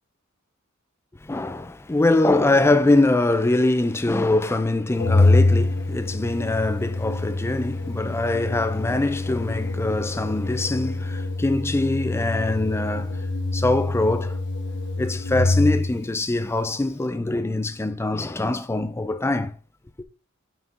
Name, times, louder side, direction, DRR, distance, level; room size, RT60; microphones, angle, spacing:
voice 1, 1.2-14.4 15.0-19.6, left 2 dB, 10° left, 0.4 m, -23 dB
Organ, 5.0-16.0, left 2 dB, 60° left, 0.9 m, -25 dB
5.5 x 4.8 x 3.7 m
head